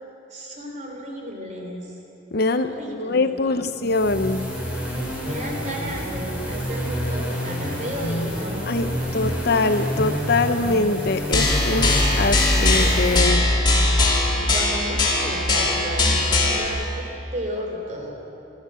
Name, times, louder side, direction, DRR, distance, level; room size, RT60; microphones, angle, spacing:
voice 1, 0.3-1.9 2.5-3.7 5.2-8.6 8.9-9.1 14.4-18.2, equal, 40° right, 1 dB, 3.6 m, -33 dB
voice 2, 2.3-4.5 8.6-13.5, left 3 dB, 55° left, 9 dB, 0.8 m, -23 dB
sound 1, 3.8-13.2, equal, 5° right, 4.1 m, -28 dB
sound 2, 11.3-16.7, left 2 dB, 25° left, 3.2 m, -20 dB
27.0 x 12.5 x 7.7 m, 2.9 s
head